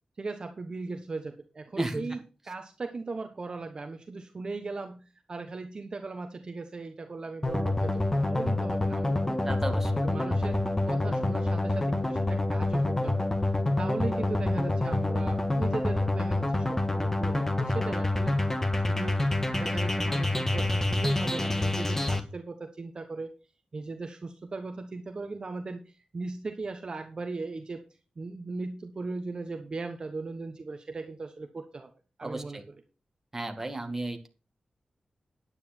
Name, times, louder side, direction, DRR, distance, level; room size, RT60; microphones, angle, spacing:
voice 1, 0.2-9.6 10.0-10.6 10.9-13.3 13.8-18.5 18.8-23.3 23.7-27.8 28.2-31.9 32.2-32.7, right 3 dB, 45° right, 6 dB, 1.1 m, -38 dB
sound 1, 7.4-22.2, left 2 dB, 20° left, 1.4 m, -27 dB
voice 2, 9.5-9.9 32.2-32.6 33.3-34.3, right 2 dB, 15° right, 4 dB, 2.0 m, -33 dB
10.0 x 9.6 x 4.4 m, 0.33 s
wide cardioid pair, 135°, 2 cm